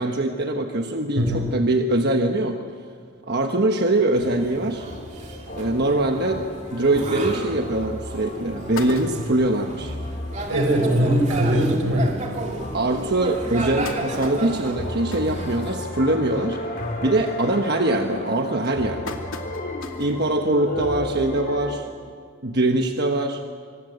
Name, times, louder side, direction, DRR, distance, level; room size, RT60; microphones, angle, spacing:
voice 1, 0.0-2.6 3.3-4.9 5.5-10.0 11.0-11.1 12.7-16.6 17.0-19.2 20.0-21.9 22.4-23.4, right 2 dB, 50° right, 4 dB, 1.3 m, -23 dB
voice 2, 1.2-1.5 10.5-12.1, right 1 dB, 90° right, 5 dB, 4.2 m, -20 dB
sound 1, 4.1-15.7, right 2 dB, 35° right, 2.6 m, -34 dB
sound 2, 4.9-21.8, left 1 dB, 40° left, 4.0 m, -35 dB
sound 3, 7.6-7.7 8.2-8.3 8.5-9.6 10.1-10.2 10.5-10.6 10.9-11.1 11.8-11.9 12.4-12.5 13.3-16.1 16.5-16.8 17.2-17.6 18.2-20.2 20.6-20.7 21.9-22.0, left 3 dB, 80° left, 2.5 m, -38 dB
26.0 x 25.0 x 8.1 m, 2.1 s
head